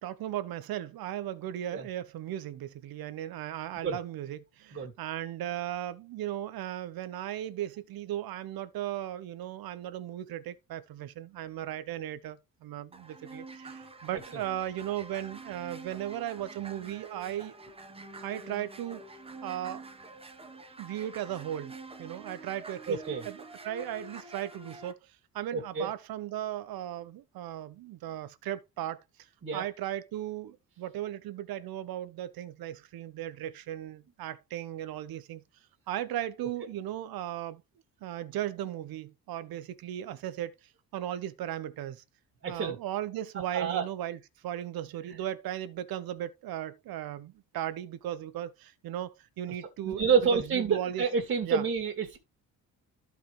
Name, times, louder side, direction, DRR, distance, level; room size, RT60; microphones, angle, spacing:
voice 1, 0.0-17.5 18.2-19.0 19.4-19.8 20.8-29.0 29.5-35.4 35.9-37.6 38.0-40.5 40.9-42.0 42.5-51.1 51.4-51.6, right 12 dB, 75° right, 1.0 m, -37 dB
sound 1, 12.9-24.9, right 3 dB, 15° right, 1.2 m, -47 dB
voice 2, 22.9-23.2 25.5-25.9 29.4-29.6 42.4-42.7 43.5-43.8 49.9-52.2, right 6 dB, 35° right, 2.1 m, -28 dB
14.0 x 4.8 x 3.2 m
cardioid pair, 135°, 36 cm